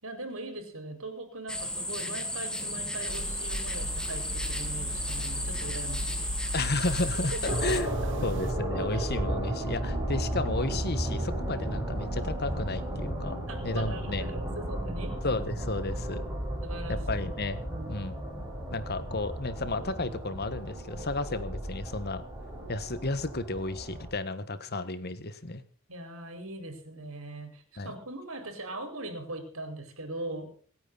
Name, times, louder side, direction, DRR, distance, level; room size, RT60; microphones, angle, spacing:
voice 1, 0.0-6.3 7.1-8.4 8.9-9.0 11.5-11.7 13.5-15.2 16.6-17.3 17.7-18.0 25.9-30.5, right 2 dB, 80° right, 6 dB, 5.1 m, -40 dB
sound 1, 1.5-7.8, left 1 dB, 5° left, 1.8 m, -34 dB
sound 2, 3.1-8.5, equal, 60° right, 1.8 m, -36 dB
voice 2, 6.5-7.9 8.2-13.4 13.6-14.3 15.2-16.2 16.9-17.6 17.9-18.1 18.7-22.2 22.7-25.6 27.8-27.9, left 2 dB, 50° left, 13 dB, 1.5 m, -33 dB
sound 3, 7.5-24.1, right 1 dB, 15° right, 5.1 m, -34 dB
26.5 x 9.3 x 4.1 m, 0.43 s
head